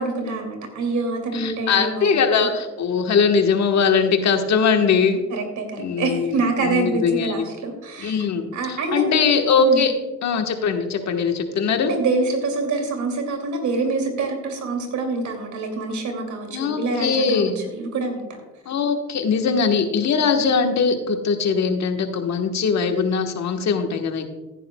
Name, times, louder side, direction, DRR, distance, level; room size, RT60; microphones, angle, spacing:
voice 1, 0.0-2.5 5.3-8.2 8.5-9.1 9.6-9.8 11.8-18.4, right 3 dB, 70° right, 4 dB, 2.6 m, -26 dB
voice 2, 1.3-5.2 5.8-7.4 8.0-9.9 10.2-11.9 16.5-17.6 18.7-24.3, left 5 dB, 65° left, 5 dB, 1.4 m, -21 dB
15.0 x 10.0 x 2.3 m, 1.1 s
cardioid pair, 90°, 30 cm